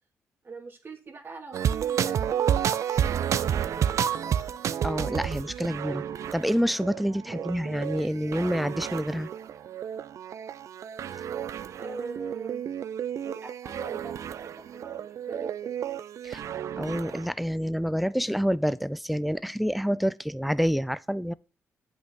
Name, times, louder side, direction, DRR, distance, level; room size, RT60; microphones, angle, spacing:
voice 1, 0.4-4.5 7.2-7.7 11.8-12.6 13.2-14.2 14.4-15.8, right 4 dB, 45° right, 2.2 m, -42 dB
sound 1, 1.5-17.3, right 9 dB, 65° right, 0.5 m, -31 dB
voice 2, 4.8-6.0 6.3-9.3 16.2-16.4 16.8-21.3, equal, ahead, 0.5 m, -27 dB
8.0 x 5.6 x 3.8 m
cardioid pair, 65°, 6 cm